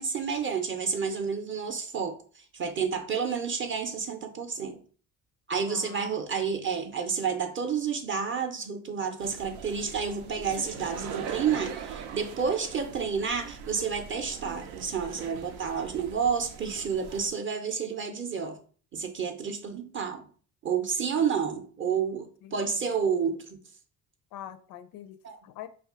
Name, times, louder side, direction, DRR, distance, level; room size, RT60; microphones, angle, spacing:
voice 1, 0.0-2.2 2.5-4.8 5.5-18.6 18.9-20.3 20.6-23.6 25.2-25.4, right 6 dB, 30° right, 0.6 m, -30 dB
voice 2, 5.7-6.1 21.0-21.2 22.4-22.6 24.3-25.2 25.4-25.7, left 11 dB, 60° left, 0.5 m, -44 dB
sound 1, 9.2-17.3, right 8 dB, 80° right, 0.5 m, -41 dB
2.4 x 2.3 x 3.5 m
hypercardioid pair, 65°, 41 cm